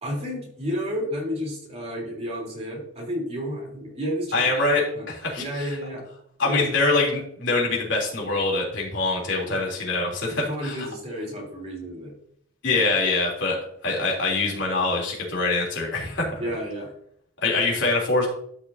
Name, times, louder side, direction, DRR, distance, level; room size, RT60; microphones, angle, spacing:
voice 1, 0.0-4.5 4.9-5.1 5.3-6.0 6.4-6.7 9.5-9.6 10.4-12.1 16.4-16.9, equal, 35° right, -3 dB, 3.7 m, -31 dB
voice 2, 4.3-5.4 6.4-10.9 12.6-13.6 13.8-16.3 17.4-18.3, left 3 dB, 65° left, -3 dB, 3.5 m, -24 dB
13.0 x 6.3 x 2.8 m, 0.68 s
head